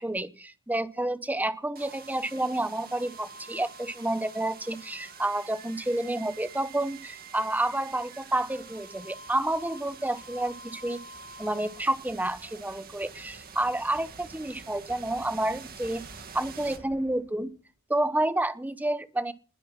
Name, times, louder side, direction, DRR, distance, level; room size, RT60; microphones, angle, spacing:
voice 1, 0.0-11.0 11.4-16.0 16.3-17.5 17.9-19.3, right 1 dB, 10° right, 13 dB, 0.9 m, -29 dB
sound 1, 1.7-17.6, right 4 dB, 45° right, 2.1 m, -46 dB
20.5 x 9.9 x 6.0 m, 0.42 s
head